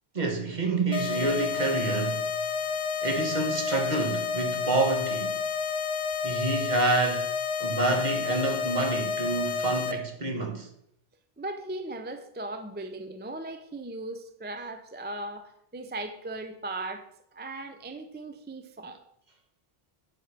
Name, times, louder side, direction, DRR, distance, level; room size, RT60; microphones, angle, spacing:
voice 1, 0.1-2.3 3.0-5.4 6.2-7.3 7.6-10.7, right 2 dB, 45° right, 1.4 m, -28 dB
sound 1, 0.9-9.9, left 6 dB, 80° left, 1.1 m, -30 dB
voice 2, 11.4-19.0, right 2 dB, 15° right, 0.4 m, -38 dB
9.2 x 4.5 x 6.7 m
omnidirectional pair, 1.0 m